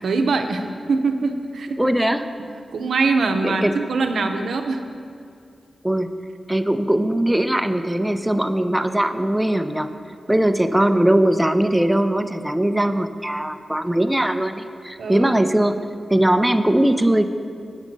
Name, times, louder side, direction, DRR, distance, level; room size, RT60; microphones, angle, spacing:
voice 1, 0.0-2.0 2.7-4.8 10.8-10.9 15.0-15.4, right 3 dB, 85° right, 6 dB, 0.6 m, -23 dB
voice 2, 1.8-2.3 3.4-3.7 5.8-9.9 10.3-15.8 16.1-17.3, right 1 dB, 10° right, 9 dB, 0.5 m, -20 dB
8.2 x 7.3 x 5.3 m, 2.4 s
cardioid pair, 65°, 0 cm